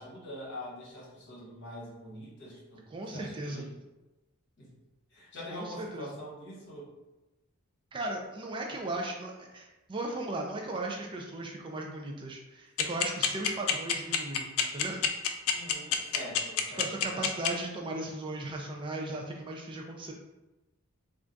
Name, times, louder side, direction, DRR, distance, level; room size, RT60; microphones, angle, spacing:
voice 1, 0.0-2.8 3.1-3.8 4.6-4.7 5.1-6.9 15.5-16.9, left 1 dB, 50° left, -5 dB, 1.0 m, -44 dB
voice 2, 2.9-3.6 5.5-6.1 7.9-15.1 16.8-20.1, right 2 dB, 20° right, 0 dB, 0.3 m, -37 dB
sound 1, 12.8-17.5, left 9 dB, 70° left, 0.3 m, -26 dB
2.4 x 2.2 x 3.8 m, 1.0 s
head